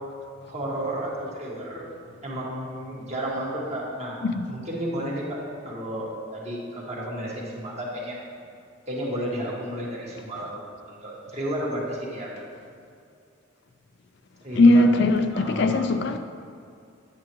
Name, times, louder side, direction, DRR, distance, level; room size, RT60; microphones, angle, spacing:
voice 1, 0.4-1.8 2.2-4.2 4.5-8.2 8.9-12.4 14.4-14.8 15.3-15.9, right 1 dB, 35° right, 1.7 m, -32 dB
voice 2, 14.6-16.2, left 2 dB, 60° left, 0.4 m, -19 dB
9.3 x 8.5 x 3.1 m
head